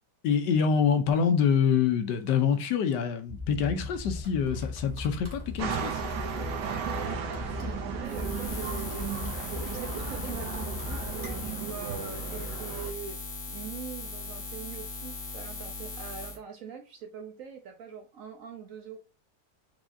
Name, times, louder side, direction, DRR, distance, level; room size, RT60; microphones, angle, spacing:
voice 1, 0.2-6.0, left 7 dB, 85° left, 1.3 m, -26 dB
sound 1, 3.3-11.5, left 2 dB, 20° right, 1.3 m, -39 dB
sound 2, 5.6-12.9, right 7 dB, 80° right, 1.4 m, -35 dB
voice 2, 6.8-13.2 13.5-19.0, right 7 dB, 65° right, 0.8 m, -43 dB
Buzz, 8.0-16.4, left 3 dB, 50° left, 1.2 m, -39 dB
4.8 x 3.5 x 2.6 m
omnidirectional pair, 1.9 m